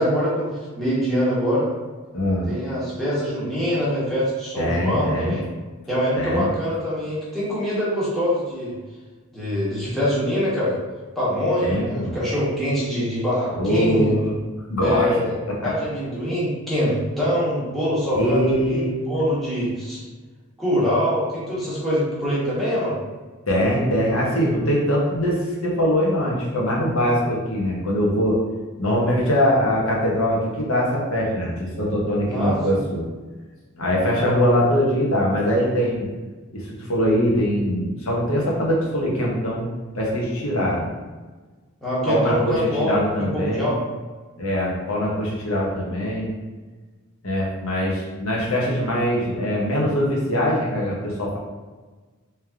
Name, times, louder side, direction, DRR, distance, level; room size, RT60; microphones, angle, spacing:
voice 1, 0.0-1.7 2.5-5.4 5.9-8.7 9.3-10.8 11.1-14.1 14.8-15.4 15.6-20.0 20.6-23.0 32.3-32.8 41.8-42.9 43.2-43.8, equal, ahead, -9 dB, 1.3 m, -24 dB
voice 2, 2.1-2.5 4.6-5.4 6.1-6.5 11.6-12.1 13.5-14.4 14.7-15.2 15.5-15.7 18.1-19.0 23.5-28.4 28.8-33.0 33.8-36.1 36.5-39.7 39.9-40.8 42.1-43.7 44.4-46.3 47.2-51.4, equal, 75° left, -4 dB, 1.1 m, -22 dB
3.4 x 3.1 x 3.6 m, 1.3 s
head